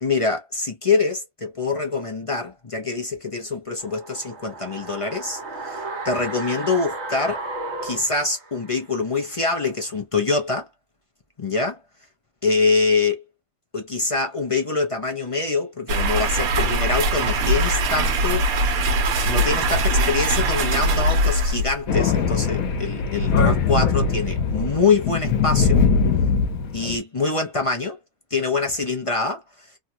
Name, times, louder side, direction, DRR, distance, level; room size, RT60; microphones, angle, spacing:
voice 1, 0.0-7.4 7.8-10.7 11.4-11.8 12.4-13.2 13.7-18.8 19.2-25.8 26.7-28.0 28.3-29.7, left 4 dB, 35° left, 0.6 m, -24 dB
sound 1, 3.8-8.9 9.2-9.3, right 2 dB, 55° right, 1.3 m, -34 dB
sound 2, 15.9-21.9, right 1 dB, 85° right, 1.2 m, -21 dB
Thunder, 21.9-27.0, left 5 dB, 80° left, 1.2 m, -21 dB
3.1 x 2.3 x 2.6 m
omnidirectional pair, 1.5 m